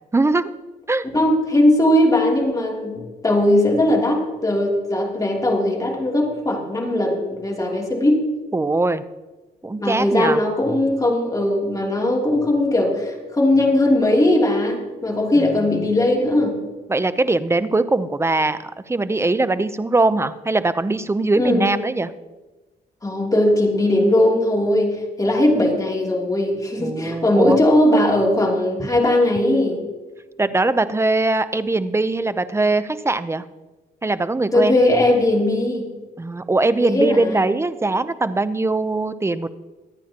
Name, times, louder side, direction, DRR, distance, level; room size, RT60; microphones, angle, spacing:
voice 1, 0.1-0.5 0.9-1.0 8.5-9.0 9.6-10.4 15.3-15.9 16.9-22.1 26.8-27.6 30.4-33.4 34.0-34.8 36.2-39.5, right 2 dB, 15° right, 13 dB, 0.6 m, -21 dB
voice 2, 1.1-8.3 9.8-16.6 21.4-21.7 23.0-29.8 34.5-35.9 36.8-37.5, left 1 dB, 20° left, 0 dB, 3.0 m, -19 dB
24.0 x 9.0 x 2.9 m, 1.2 s
cardioid pair, 90°, 17 cm